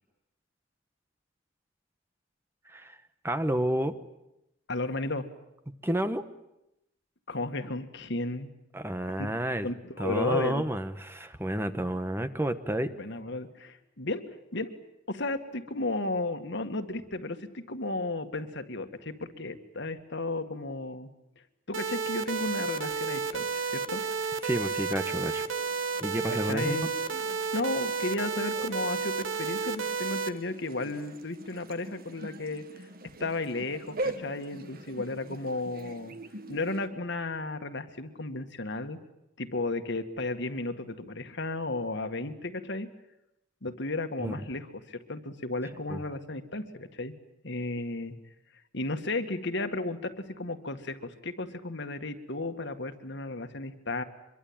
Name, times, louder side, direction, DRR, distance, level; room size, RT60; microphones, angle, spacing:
voice 1, 2.7-3.0 3.2-3.9 5.8-6.2 8.7-9.7 10.0-12.9 24.4-25.4 26.0-26.8 44.2-44.3 45.9-46.0, right 1 dB, 10° right, 10 dB, 1.1 m, -30 dB
voice 2, 4.7-5.3 7.3-8.5 9.1-9.3 9.6-10.6 13.0-14.2 14.5-14.7 15.1-21.1 21.7-24.0 26.3-26.9 27.5-32.9 33.2-36.1 36.5-39.0 39.4-42.9 43.6-47.1 47.4-48.1 48.7-54.0, left 2 dB, 65° left, 7 dB, 2.0 m, -34 dB
sound 1, 21.7-30.3, right 5 dB, 80° right, 1.4 m, -31 dB
sound 2, 22.2-36.9, right 2 dB, 50° right, 1.6 m, -44 dB
25.0 x 23.0 x 8.9 m, 0.88 s
head